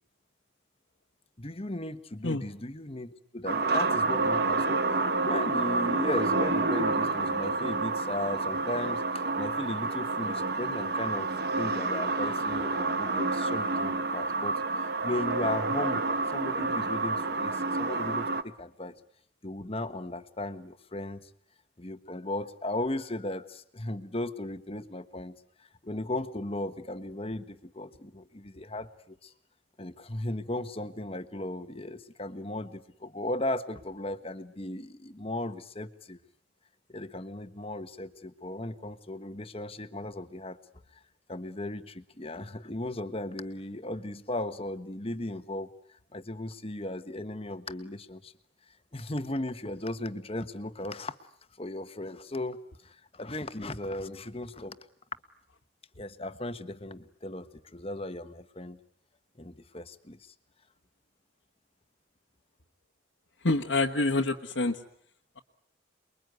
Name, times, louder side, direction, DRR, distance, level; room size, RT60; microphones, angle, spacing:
voice 1, 1.4-11.3 11.6-19.0 19.4-21.3 21.8-29.3 29.8-36.2 36.9-40.6 40.9-41.0 41.3-48.3 48.9-51.2 51.6-54.8 56.0-58.8 59.4-60.3, left 1 dB, 30° left, 11 dB, 1.3 m, -36 dB
sound 1, 3.5-18.4, right 3 dB, 55° right, 1.4 m, -29 dB
voice 2, 63.4-64.8, left 2 dB, 75° left, 1 dB, 1.5 m, -26 dB
29.0 x 22.0 x 9.4 m, 0.67 s
head